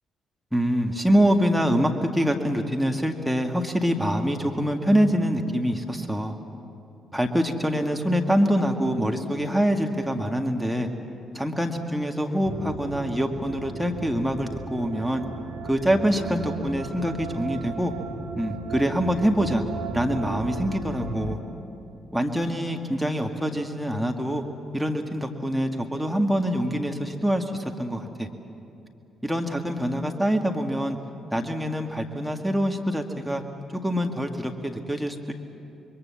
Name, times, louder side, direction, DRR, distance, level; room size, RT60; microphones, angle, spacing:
voice 1, 0.5-6.3 7.1-10.9 11.3-15.2 15.6-17.9 18.4-19.6 19.9-21.4 22.1-24.4 24.7-28.3 29.2-31.0 31.3-33.4 33.7-35.3, equal, ahead, 3 dB, 2.0 m, -25 dB
sound 1, 12.4-21.4, right 3 dB, 85° right, 2.2 m, -35 dB
27.0 x 22.5 x 7.3 m, 2.8 s
figure-of-eight pair, 40°, 0 cm